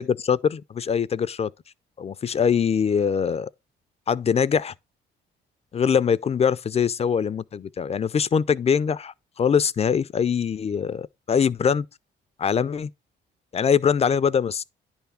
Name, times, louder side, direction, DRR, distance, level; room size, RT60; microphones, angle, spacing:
voice 1, 0.0-1.5 2.0-3.5 4.1-4.7 5.7-11.9 12.4-12.9 13.5-14.6, left 7 dB, 30° left, 0.4 m, -23 dB
10.0 x 3.4 x 5.5 m
cardioid pair, 90°, 20 cm